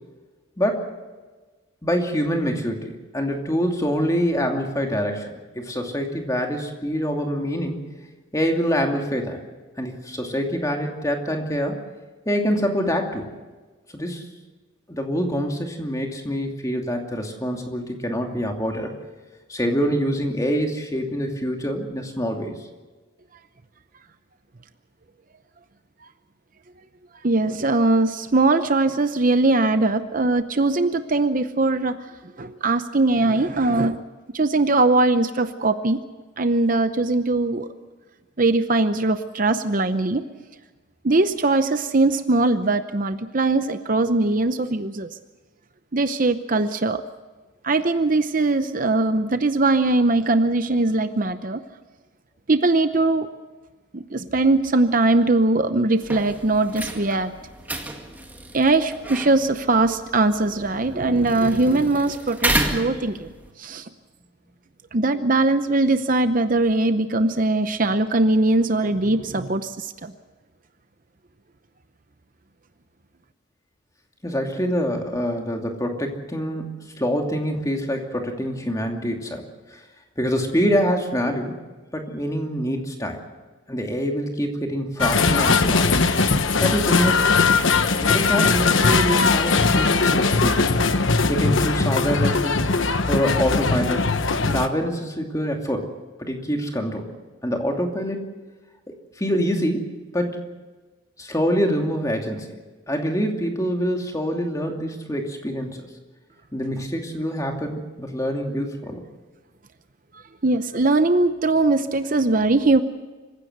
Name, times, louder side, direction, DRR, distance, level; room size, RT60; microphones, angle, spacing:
voice 1, 0.6-0.9 1.8-7.8 8.3-9.4 9.8-11.8 12.3-13.3 13.9-14.3 14.9-18.9 19.5-22.6 74.2-76.7 77.0-79.4 79.7-79.8 80.2-81.6 81.9-83.2 83.7-86.0 86.6-87.4 88.0-90.7 91.3-92.6 93.1-94.1 94.5-95.9 96.2-97.0 97.4-98.3 99.2-100.4 101.2-102.6 102.9-105.8 106.5-109.0, equal, 15° left, 2 dB, 2.6 m, -25 dB
voice 2, 27.2-32.0 32.4-34.0 34.3-36.0 36.4-37.7 38.4-40.2 41.0-45.1 45.9-47.0 47.6-51.6 52.5-53.3 53.9-57.3 58.5-63.3 63.6-63.9 64.9-70.1 110.4-112.8, right 2 dB, 40° right, 10 dB, 0.7 m, -20 dB
sound 1, 56.0-63.5, right 1 dB, 10° right, 2.0 m, -31 dB
sound 2, 85.0-94.7, left 4 dB, 65° left, 1.2 m, -20 dB
26.0 x 15.5 x 8.0 m, 1.3 s
head